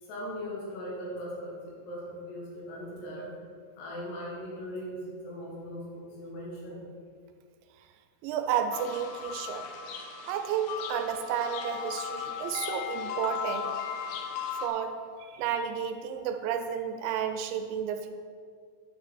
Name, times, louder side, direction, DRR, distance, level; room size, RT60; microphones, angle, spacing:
voice 1, 0.0-3.4 3.8-6.9, equal, 70° left, -3 dB, 3.6 m, -39 dB
voice 2, 8.2-9.7 10.3-13.7 14.6-18.1, right 8 dB, 85° right, 7 dB, 2.9 m, -32 dB
sound 1, 8.7-14.7, left 7 dB, 90° left, 3.0 m, -36 dB
9.4 x 6.6 x 4.4 m, 2.1 s
omnidirectional pair, 5.2 m